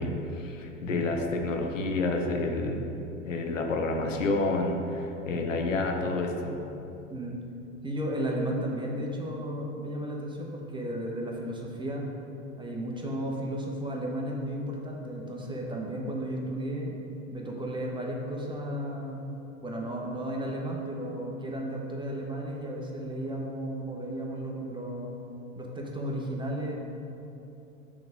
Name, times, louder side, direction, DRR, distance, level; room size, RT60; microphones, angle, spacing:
voice 1, 0.0-2.8 3.2-6.6, left 2 dB, 90° left, 3 dB, 0.8 m, -29 dB
voice 2, 7.8-12.0 12.6-16.9 17.3-19.2 19.6-25.1 25.6-26.7, right 1 dB, 15° right, -1 dB, 1.0 m, -34 dB
6.0 x 3.6 x 5.1 m, 2.8 s
hypercardioid pair, 85°, 37 cm